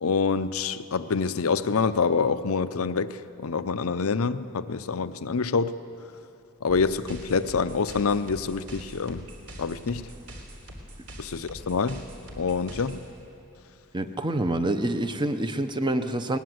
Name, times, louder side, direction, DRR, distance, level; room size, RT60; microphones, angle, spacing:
voice 1, 0.0-3.2 3.4-5.7 6.6-9.2 9.6-10.0 11.2-12.0 12.4-13.0, left 5 dB, 70° left, 13 dB, 0.6 m, -26 dB
sound 1, 6.7-13.1, equal, 75° right, 3.5 m, -43 dB
voice 2, 13.9-16.4, right 1 dB, 20° right, 8 dB, 0.8 m, -27 dB
20.5 x 19.0 x 7.8 m, 2.8 s
head